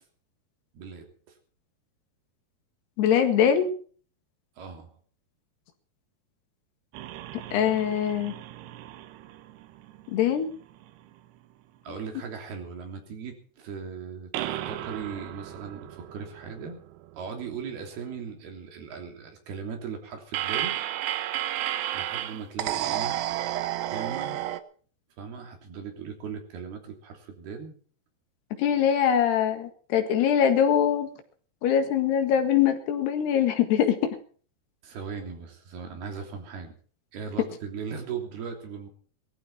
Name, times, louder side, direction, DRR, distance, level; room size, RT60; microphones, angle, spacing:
voice 1, 0.7-1.1 4.6-4.9 11.8-16.8 17.1-20.8 21.9-23.2 23.9-24.4 25.2-27.8 34.8-36.7 37.1-38.9, right 6 dB, 70° right, 3 dB, 5.1 m, -38 dB
voice 2, 3.0-3.7 7.5-8.4 10.1-10.5 28.6-31.1 31.6-34.2, left 8 dB, 85° left, 7 dB, 3.9 m, -23 dB
sound 1, 6.9-10.4 10.8-10.9 14.3-17.5 20.3-24.6, right 13 dB, 90° right, 3.1 m, -33 dB
19.5 x 14.5 x 4.3 m, 0.43 s
omnidirectional pair, 4.7 m